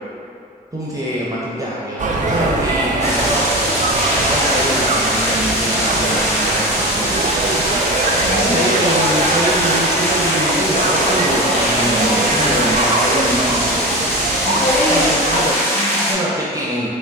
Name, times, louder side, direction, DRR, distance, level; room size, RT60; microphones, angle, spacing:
voice 1, 0.7-3.8 4.3-7.2 8.4-13.8 14.9-15.6 16.0-16.9, equal, 20° right, -7 dB, 0.7 m, -23 dB
sound 1, 2.0-15.5, right 2 dB, 50° right, 0.4 m, -21 dB
sound 2, 3.0-16.1, equal, 40° left, 1.2 m, -21 dB
voice 2, 8.1-8.6 14.4-16.2, left 1 dB, 65° left, -9 dB, 0.7 m, -23 dB
3.7 x 2.1 x 3.5 m, 2.5 s
cardioid pair, 45°, 16 cm